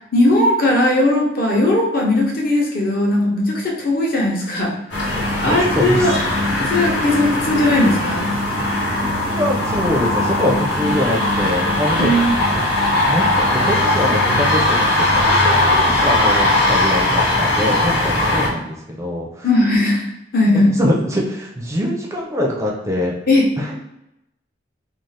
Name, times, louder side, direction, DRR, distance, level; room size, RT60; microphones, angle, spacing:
voice 1, 0.1-6.1 6.6-8.3 12.0-12.3 19.4-20.8 23.3-23.5, left 1 dB, 50° left, -2 dB, 0.7 m, -18 dB
sound 1, 4.9-18.5, left 1 dB, 80° left, 1.1 m, -19 dB
voice 2, 5.4-6.1 8.6-12.2 12.5-12.7 13.0-19.5 20.6-23.2 23.6-23.8, left 1 dB, 15° right, -2 dB, 0.4 m, -24 dB
2.5 x 2.3 x 3.2 m, 0.86 s
head